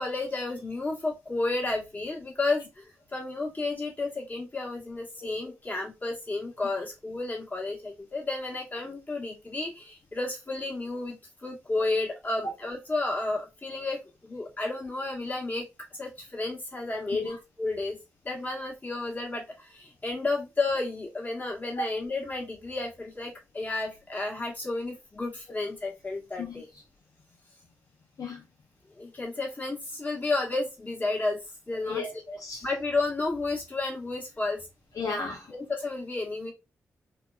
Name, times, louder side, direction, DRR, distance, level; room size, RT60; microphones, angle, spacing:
voice 1, 0.0-15.6 16.0-18.0 18.2-26.7 29.0-31.4 31.7-32.0 32.6-34.7 35.5-36.5, left 2 dB, 25° left, 1.3 m, -32 dB
voice 2, 31.9-32.6 35.0-35.5, left 3 dB, 70° left, 0.6 m, -34 dB
2.8 x 2.2 x 2.3 m
supercardioid pair, 45°, 6 cm